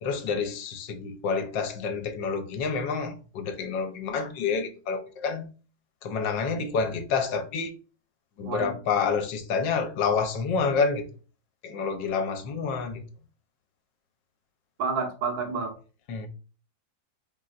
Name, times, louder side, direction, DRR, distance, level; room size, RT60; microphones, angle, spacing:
voice 1, 0.0-5.5 6.0-7.7 8.4-11.0 11.6-13.0 16.1-16.3, left 5 dB, 75° left, 1.3 m, -28 dB
voice 2, 14.8-15.7, right 5 dB, 90° right, 1.9 m, -29 dB
4.2 x 4.0 x 2.4 m
omnidirectional pair, 2.1 m